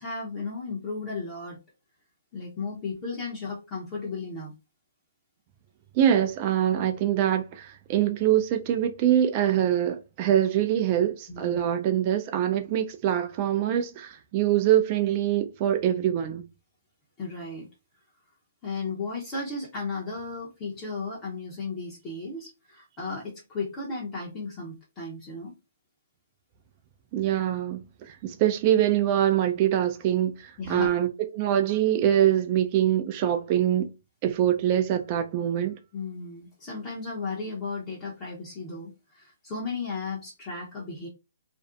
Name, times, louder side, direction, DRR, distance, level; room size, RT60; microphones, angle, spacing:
voice 1, 0.0-1.6 2.3-4.5 11.3-11.6 17.2-17.7 18.6-25.5 30.6-30.9 35.9-41.1, left 3 dB, 25° left, 0.7 m, -35 dB
voice 2, 5.9-16.4 27.1-31.1 31.3-33.9 34.2-35.7, right 11 dB, 30° right, 0.3 m, -24 dB
2.5 x 2.1 x 2.4 m
hypercardioid pair, 150°, 0 cm